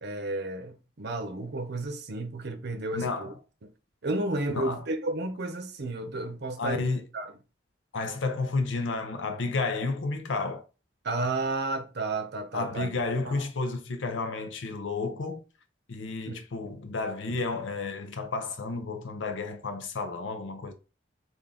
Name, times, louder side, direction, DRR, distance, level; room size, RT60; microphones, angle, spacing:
voice 1, 0.0-3.3 4.0-6.8 7.1-7.3 11.0-12.9 13.2-13.3 16.3-16.4, right 2 dB, 60° right, 0.7 m, -32 dB
voice 2, 2.9-3.4 4.5-4.8 6.6-7.0 7.9-10.6 12.5-15.4 15.9-20.7, left 3 dB, 70° left, 0.6 m, -31 dB
3.5 x 2.5 x 3.7 m
head